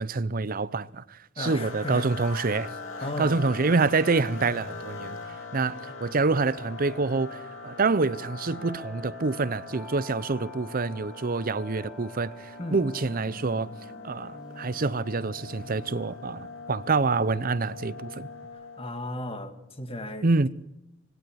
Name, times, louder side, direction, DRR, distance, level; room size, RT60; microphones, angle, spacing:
voice 1, 0.0-2.7 3.2-5.2 5.5-13.7 14.0-18.3 20.2-20.5, right 3 dB, 45° right, 0.7 m, -27 dB
sound 1, 1.4-19.3, left 4 dB, 85° left, 2.8 m, -42 dB
voice 2, 1.4-2.1 3.0-3.4 12.6-12.8 18.8-20.5, left 1 dB, 30° left, 1.9 m, -35 dB
sound 2, 2.5-18.5, equal, 5° right, 1.6 m, -49 dB
19.5 x 17.5 x 7.9 m
head